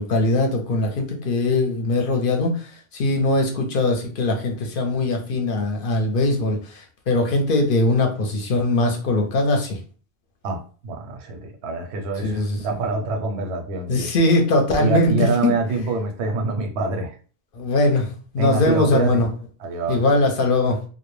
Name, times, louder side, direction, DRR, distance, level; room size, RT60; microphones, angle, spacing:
voice 1, 0.0-9.8 12.2-12.6 13.9-15.6 17.5-18.1 18.3-19.3 19.9-20.8, left 2 dB, 60° left, 0.7 m, -21 dB
voice 2, 10.4-14.1 14.8-17.2 18.4-19.2 19.6-20.0, right 3 dB, 85° right, 0.8 m, -26 dB
2.1 x 2.0 x 3.0 m
omnidirectional pair, 1.1 m